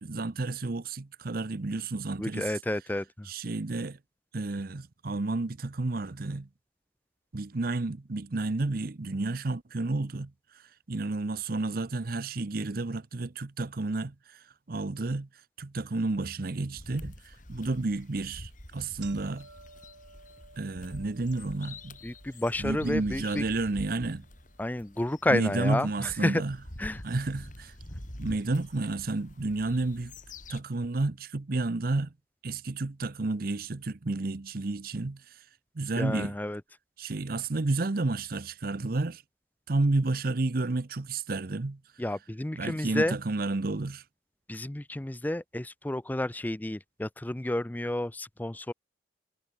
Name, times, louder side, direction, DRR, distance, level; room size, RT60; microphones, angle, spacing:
voice 1, 0.0-2.5 3.2-4.0 4.3-6.5 7.3-10.3 10.9-15.3 15.6-19.5 20.6-22.0 22.6-24.2 25.3-26.6 27.0-27.7 28.2-30.1 30.5-32.1 32.4-35.4 35.7-36.4 37.0-39.2 39.7-41.8 42.5-44.0, right 2 dB, 50° right, 0.7 m, -31 dB
voice 2, 2.2-3.3 22.0-23.4 24.6-26.4 26.8-27.0 36.0-36.6 42.0-43.2 44.5-48.7, left 1 dB, 10° left, 0.4 m, -30 dB
sound 1, 16.2-16.3 16.8-16.9 17.7-17.9 18.3-18.4 18.6-26.8 27.1-27.8 28.6-28.7 29.7-29.8 30.1-30.2 30.7-30.9, right 4 dB, 70° right, 6.9 m, -57 dB
sound 2, 16.8-30.6, left 1 dB, 45° left, 5.7 m, -46 dB
head